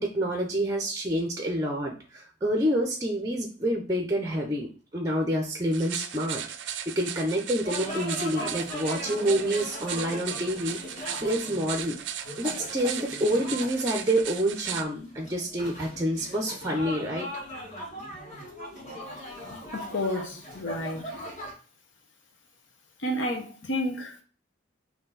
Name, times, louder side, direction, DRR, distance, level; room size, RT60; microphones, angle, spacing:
voice 1, 0.0-12.0 12.4-17.3, equal, 15° right, 0.6 m, -28 dB
sound 1, 5.7-14.8, right 10 dB, 70° right, 0.4 m, -37 dB
sound 2, 7.6-21.5, equal, 40° left, 2.0 m, -39 dB
voice 2, 19.7-21.0 23.0-24.2, left 1 dB, 80° left, 0.9 m, -30 dB
4.3 x 2.8 x 3.9 m
head